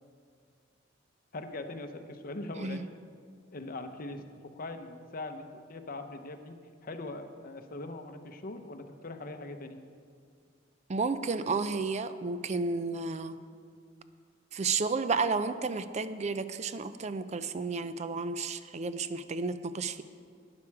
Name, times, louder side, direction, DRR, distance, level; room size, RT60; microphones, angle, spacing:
voice 1, 1.3-2.9 3.5-9.8, left 2 dB, 50° left, 7 dB, 0.8 m, -41 dB
voice 2, 10.9-13.4 14.5-20.0, right 4 dB, 35° right, 12 dB, 0.4 m, -32 dB
12.0 x 9.8 x 4.7 m, 2.1 s
head